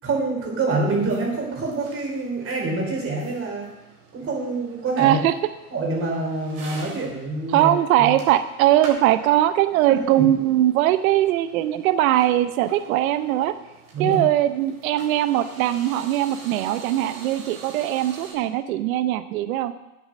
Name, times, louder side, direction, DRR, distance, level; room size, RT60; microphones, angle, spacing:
voice 1, 0.0-3.7 4.1-5.2 5.7-7.7 8.0-8.1 9.9-10.3 13.9-14.2, right 3 dB, 30° right, 0 dB, 4.3 m, -26 dB
sound 1, 0.8-18.3, right 3 dB, 45° right, 3.8 m, -46 dB
voice 2, 5.0-5.3 7.5-13.5 14.0-19.7, right 13 dB, 65° right, 12 dB, 0.8 m, -20 dB
9.8 x 8.7 x 6.3 m, 0.97 s
hypercardioid pair, 115°, 45 cm